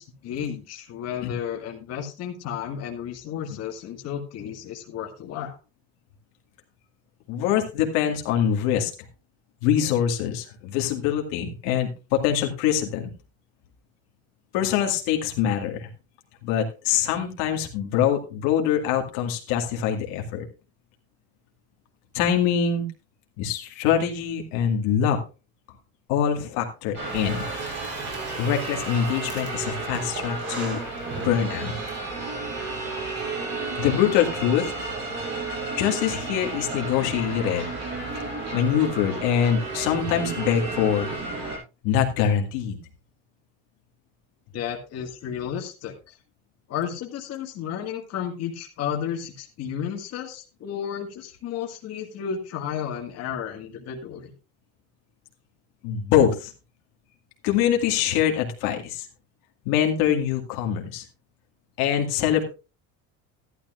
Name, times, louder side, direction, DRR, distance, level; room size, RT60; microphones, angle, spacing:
voice 1, 0.0-5.6 44.5-46.2 46.7-54.3, left 8 dB, 50° left, 2 dB, 1.9 m, -33 dB
voice 2, 7.3-8.9 9.6-13.1 14.5-15.9 16.4-20.5 22.1-22.9 23.4-25.2 26.1-27.4 28.4-30.8 31.2-31.8 33.8-34.7 35.8-41.1 41.8-42.8 55.8-56.5 57.4-59.1 59.7-61.0 61.8-62.4, left 9 dB, 80° left, 2 dB, 2.0 m, -24 dB
sound 1, 26.9-41.6, right 3 dB, 55° right, 6.9 m, -32 dB
Breathing, 27.0-31.9, right 3 dB, 35° right, 4.6 m, -39 dB
13.5 x 11.5 x 2.5 m, 0.31 s
cardioid pair, 125°, 33 cm